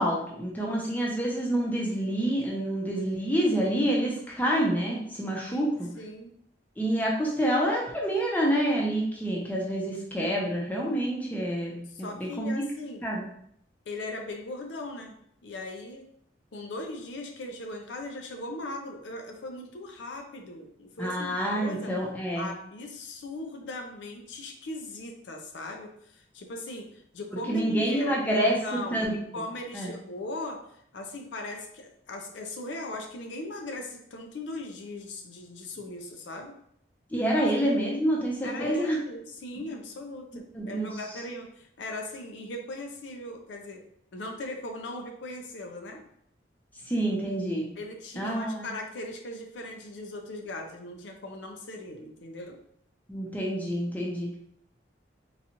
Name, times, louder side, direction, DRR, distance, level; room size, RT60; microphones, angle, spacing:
voice 1, 0.0-5.9 6.8-12.6 13.0-13.2 21.0-22.5 27.5-28.6 28.9-29.1 29.7-29.9 37.1-39.0 40.5-40.9 46.9-47.7 48.2-48.7 53.1-54.4, right 1 dB, 10° left, -3 dB, 0.6 m, -27 dB
voice 2, 6.0-6.3 11.9-13.0 13.9-15.2 15.4-16.0 16.5-21.9 22.4-36.6 38.4-43.8 44.1-46.0 47.8-52.6, left 2 dB, 75° left, 3 dB, 0.5 m, -39 dB
3.9 x 2.3 x 2.8 m, 0.70 s
head